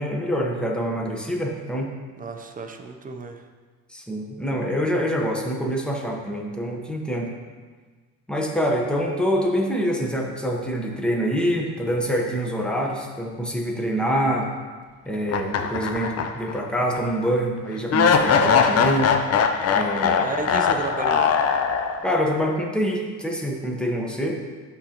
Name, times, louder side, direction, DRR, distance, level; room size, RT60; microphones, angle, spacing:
voice 1, 0.0-1.9 3.9-7.3 8.3-14.5 15.0-19.1 19.7-20.3 22.0-24.4, equal, ahead, 0 dB, 0.9 m, -25 dB
voice 2, 2.2-3.5 20.2-21.3, right 4 dB, 20° right, 5 dB, 0.5 m, -32 dB
sound 1, 15.3-16.6 16.9-17.0 17.9-22.2, left 6 dB, 40° left, 0.5 m, -21 dB
11.0 x 3.8 x 2.9 m, 1.4 s
cardioid pair, 115°, 39 cm